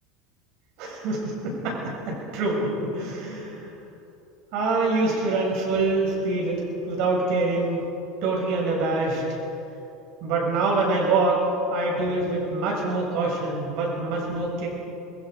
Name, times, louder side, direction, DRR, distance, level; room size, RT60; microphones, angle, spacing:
voice 1, 0.8-3.8 4.5-7.9 8.2-9.2 10.2-11.4 11.7-14.7, right 3 dB, 60° right, -2 dB, 6.9 m, -25 dB
27.5 x 21.5 x 5.3 m, 2.8 s
supercardioid pair, 150°, 0 cm